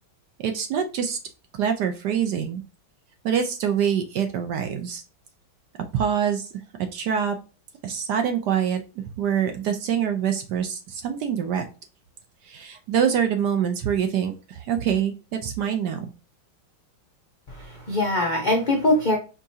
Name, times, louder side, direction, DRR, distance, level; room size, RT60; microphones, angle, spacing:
voice 1, 0.4-1.2 1.6-2.6 3.2-5.0 5.9-6.5 6.8-7.4 7.8-11.6 12.4-16.1, right 8 dB, 70° right, 6 dB, 1.0 m, -25 dB
voice 2, 17.5-19.2, left 1 dB, 70° left, 0 dB, 0.4 m, -22 dB
4.6 x 2.9 x 2.6 m, 0.32 s
omnidirectional pair, 2.2 m